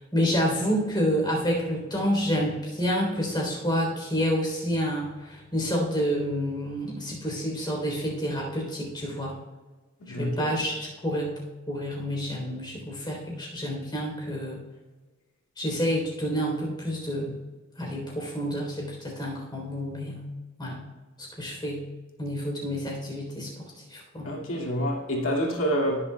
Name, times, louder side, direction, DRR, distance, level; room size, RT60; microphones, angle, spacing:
voice 1, 0.1-9.3 10.1-14.6 15.6-17.4 17.8-20.3 20.6-20.8 21.2-21.9 22.2-24.4, equal, 20° left, -2 dB, 3.5 m, -29 dB
voice 2, 10.1-10.5 24.2-26.0, equal, 85° left, -2 dB, 2.2 m, -27 dB
18.0 x 7.4 x 2.3 m, 1.2 s
head